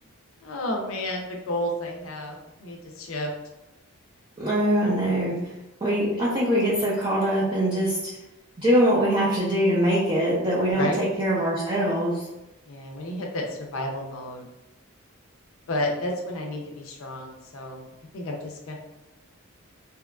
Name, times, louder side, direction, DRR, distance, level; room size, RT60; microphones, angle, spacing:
voice 1, 0.4-3.3 10.7-11.1 12.7-14.5 15.7-17.9 18.1-18.8, left 1 dB, 65° left, 1 dB, 0.5 m, -31 dB
voice 2, 4.4-5.3 5.8-8.1 8.6-12.2, equal, 25° right, -8 dB, 0.4 m, -23 dB
2.8 x 2.3 x 2.2 m, 0.95 s
head